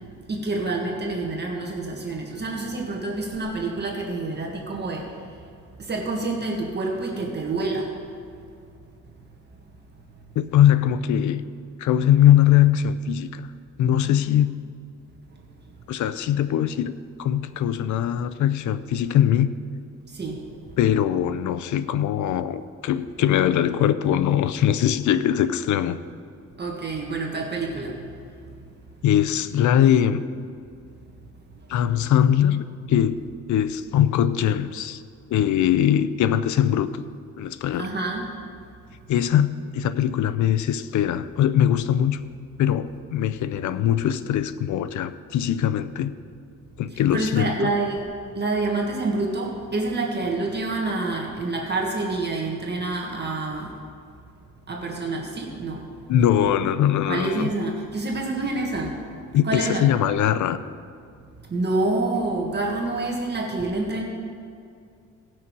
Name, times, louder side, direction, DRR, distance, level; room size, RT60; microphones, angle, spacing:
voice 1, 0.3-5.1 5.9-7.9 20.1-20.4 26.6-28.0 37.7-38.3 46.9-48.0 48.3-53.7 54.7-55.8 57.1-59.0 59.4-59.9 61.5-64.0, right 2 dB, 35° right, 0 dB, 1.7 m, -27 dB
voice 2, 10.4-11.4 11.8-13.5 13.8-14.5 15.9-16.9 17.2-19.5 20.8-26.0 29.0-30.2 31.7-33.2 33.5-35.0 35.3-37.0 37.4-37.9 39.1-42.2 42.6-46.1 46.8-47.7 56.1-57.5 59.3-60.6, left 10 dB, 75° left, 14 dB, 0.6 m, -21 dB
18.0 x 6.2 x 4.7 m, 2.4 s
cardioid pair, 90°, 30 cm